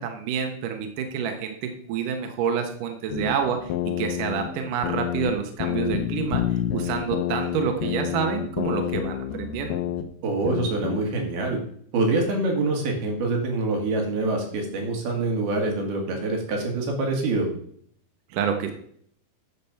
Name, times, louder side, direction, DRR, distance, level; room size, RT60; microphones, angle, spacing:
voice 1, 0.0-3.7 4.0-9.8 18.3-18.7, right 7 dB, 65° right, 5 dB, 2.5 m, -28 dB
sound 1, 3.1-5.3 5.6-10.0 10.4-11.0, left 11 dB, 70° left, 2.2 m, -28 dB
voice 2, 10.2-11.6 11.9-17.5, right 2 dB, 85° right, 1 dB, 4.0 m, -25 dB
10.0 x 5.1 x 7.0 m, 0.62 s
omnidirectional pair, 4.3 m